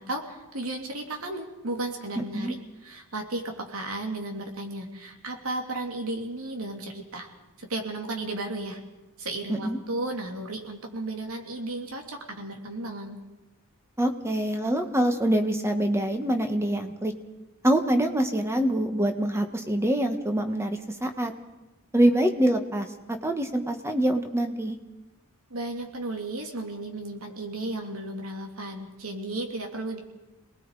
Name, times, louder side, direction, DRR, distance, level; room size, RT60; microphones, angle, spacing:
voice 1, 0.0-7.3 7.6-8.8 9.2-13.2 25.5-30.0, right 2 dB, 80° right, 3 dB, 3.0 m, -34 dB
voice 2, 2.2-2.5 9.5-9.8 14.0-17.1 17.6-21.3 21.9-24.8, right 1 dB, 15° right, 6 dB, 1.5 m, -25 dB
27.5 x 20.0 x 4.9 m, 1.1 s
head